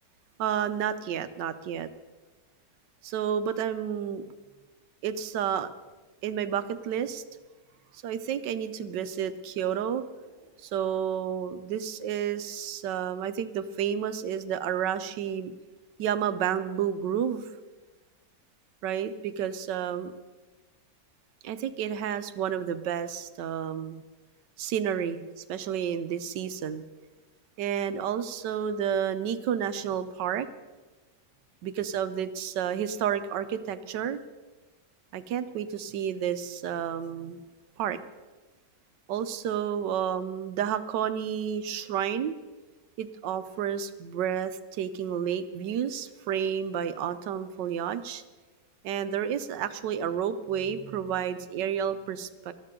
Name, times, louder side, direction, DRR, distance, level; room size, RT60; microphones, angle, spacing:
voice 1, 0.4-1.9 3.0-4.3 5.0-5.7 6.2-7.2 8.0-10.0 10.6-15.5 16.0-17.5 18.8-20.1 21.4-24.0 24.6-26.8 27.6-30.5 31.6-34.2 35.1-37.4 37.8-38.0 39.1-42.3 43.0-48.2 48.8-52.5, right 9 dB, 90° right, 12 dB, 1.4 m, -30 dB
19.5 x 13.0 x 3.7 m, 1.2 s
omnidirectional pair, 1.8 m